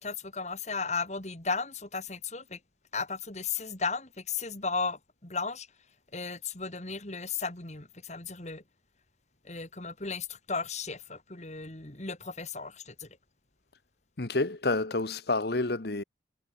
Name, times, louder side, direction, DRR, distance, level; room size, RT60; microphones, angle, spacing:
voice 1, 0.0-2.6 2.9-5.7 6.1-8.6 9.4-13.1, left 4 dB, 35° left, 2.8 m, -35 dB
voice 2, 14.2-16.0, left 2 dB, 55° left, 1.2 m, -29 dB
head